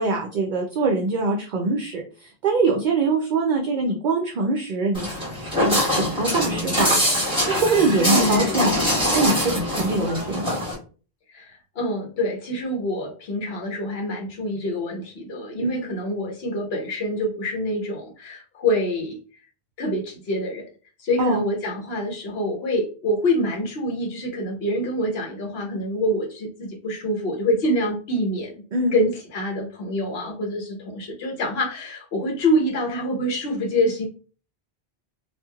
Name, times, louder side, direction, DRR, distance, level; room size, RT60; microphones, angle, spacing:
voice 1, 0.0-7.0 7.5-8.8 9.1-10.6 15.6-15.8 21.2-21.4 28.7-28.9, right 3 dB, 60° right, 1 dB, 0.5 m, -23 dB
Walk footsteps, 4.9-10.7, left 1 dB, 5° right, 1.1 m, -23 dB
voice 2, 8.0-8.7 11.3-19.2 19.8-20.6 21.0-28.6 28.9-34.1, left 1 dB, 70° left, 1 dB, 1.1 m, -26 dB
2.9 x 2.4 x 2.3 m, 0.38 s
omnidirectional pair, 1.1 m